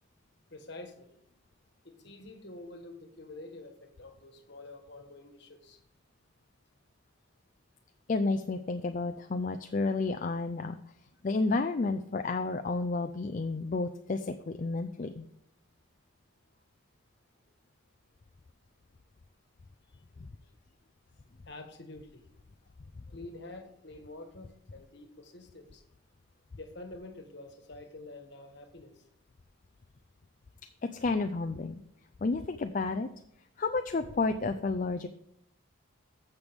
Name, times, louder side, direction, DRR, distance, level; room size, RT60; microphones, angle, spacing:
voice 1, 0.5-1.1 1.8-5.8 21.4-22.2 23.1-25.8 26.5-29.0, left 2 dB, 55° left, 6 dB, 1.4 m, -47 dB
voice 2, 8.1-10.8 11.2-15.3 30.8-31.8 32.2-33.1 33.6-35.1, left 3 dB, 40° left, 7 dB, 0.4 m, -31 dB
14.0 x 6.7 x 3.5 m, 0.76 s
head